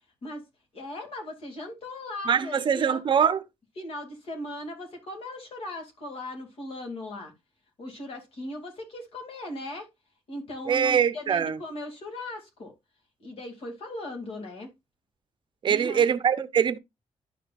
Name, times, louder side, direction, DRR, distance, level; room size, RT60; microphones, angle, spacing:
voice 1, 0.7-3.0 3.8-7.3 7.8-9.9 10.3-12.7 13.2-14.7 15.7-16.1, left 1 dB, 60° left, 2.4 m, -38 dB
voice 2, 2.3-3.4 10.7-11.6 15.6-16.8, right 7 dB, 45° right, 0.6 m, -23 dB
12.0 x 5.1 x 2.4 m
wide cardioid pair, 170°, 11 cm